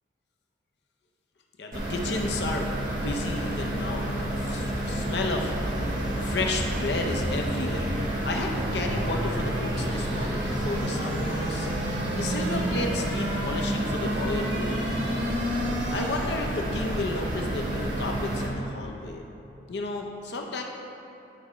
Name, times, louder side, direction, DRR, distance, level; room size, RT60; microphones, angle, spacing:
voice 1, 1.6-2.7 3.0-5.5 6.2-11.7 12.1-15.2 15.9-19.2 19.7-20.6, left 2 dB, 65° left, 2 dB, 0.5 m, -32 dB
sound 1, 1.7-18.5, right 1 dB, 50° right, 1.3 m, -30 dB
sound 2, 4.8-16.6, equal, 80° right, 1.1 m, -33 dB
9.3 x 4.2 x 4.8 m, 2.9 s
head